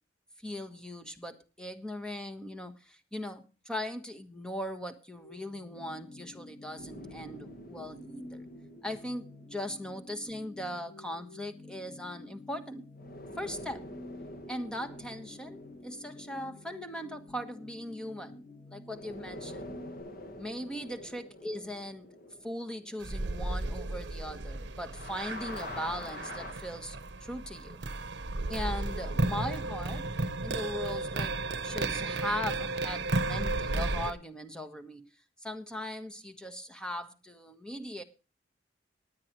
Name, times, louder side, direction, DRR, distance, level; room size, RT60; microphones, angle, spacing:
voice 1, 0.4-8.4 8.8-12.8 13.4-13.8 14.5-19.6 20.4-22.1 22.4-27.8 28.5-30.1 30.4-31.3 31.6-35.1 35.4-38.0, left 1 dB, 5° left, 7 dB, 1.4 m, -39 dB
sound 1, 5.2-20.0, left 2 dB, 25° left, 7.4 m, -50 dB
sound 2, 6.8-11.3 13.0-18.4 18.9-24.5 24.8-26.5, left 1 dB, 50° left, 1.5 m, -47 dB
sound 3, 23.0-34.1, right 2 dB, 65° right, 1.0 m, -34 dB
19.0 x 9.6 x 3.1 m, 0.32 s
head